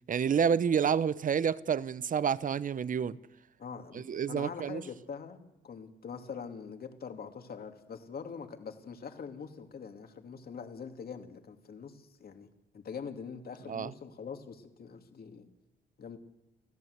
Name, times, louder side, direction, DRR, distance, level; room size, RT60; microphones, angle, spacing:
voice 1, 0.1-3.2 3.9-4.8 13.7-13.9, right 7 dB, 45° right, 0.8 m, -29 dB
voice 2, 3.6-5.4 5.6-12.5 12.7-15.5 16.0-16.2, left 6 dB, 50° left, 2.7 m, -43 dB
26.5 x 15.0 x 8.2 m
cardioid pair, 90°, 20 cm